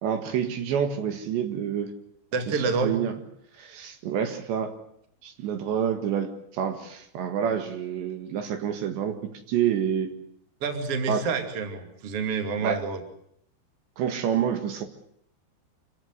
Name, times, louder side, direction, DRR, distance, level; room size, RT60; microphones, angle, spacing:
voice 1, 0.0-1.9 2.5-3.1 3.6-4.8 5.2-9.2 9.5-10.1 11.1-11.3 12.6-12.8 14.0-14.9, right 8 dB, 70° right, 7 dB, 3.8 m, -28 dB
voice 2, 2.3-3.0 10.6-13.0, right 5 dB, 35° right, 6 dB, 2.9 m, -28 dB
27.0 x 16.5 x 8.0 m, 0.72 s
omnidirectional pair, 5.5 m